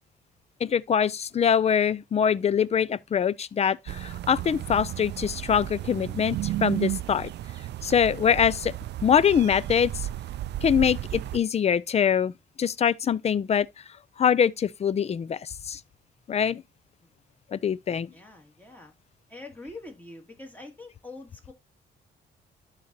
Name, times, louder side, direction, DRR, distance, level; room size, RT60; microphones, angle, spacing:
voice 1, 0.6-7.3 7.8-8.7 9.0-10.1 10.6-12.3 12.6-13.7 14.2-15.8 16.3-16.6 17.5-18.1, left 8 dB, 35° left, 0.4 m, -24 dB
sound 1, 3.9-11.4, right 13 dB, 60° right, 0.4 m, -33 dB
voice 2, 18.1-18.9 19.3-21.5, left 2 dB, 10° left, 2.4 m, -44 dB
11.5 x 4.1 x 2.8 m
cardioid pair, 90°, 20 cm